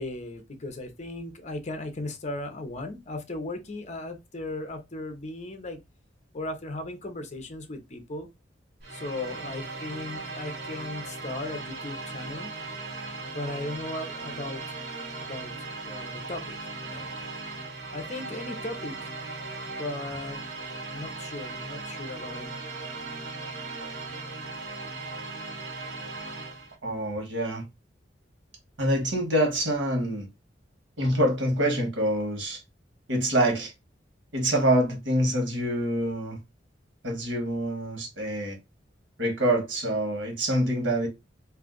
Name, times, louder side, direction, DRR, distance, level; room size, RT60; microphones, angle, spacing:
voice 1, 0.0-5.8 6.3-8.3 8.9-12.5 13.2-14.6 15.2-15.5 15.8-17.1 17.9-19.1 19.7-20.4 20.9-22.6, left 2 dB, 40° left, 0.7 m, -37 dB
sound 1, 8.8-26.8, right 3 dB, 65° right, 0.9 m, -38 dB
voice 2, 26.8-27.6 28.8-30.3 31.0-32.6 33.1-33.7 34.3-36.4 37.0-38.6 39.2-41.1, right 1 dB, 90° right, 1.3 m, -26 dB
2.6 x 2.3 x 3.7 m
head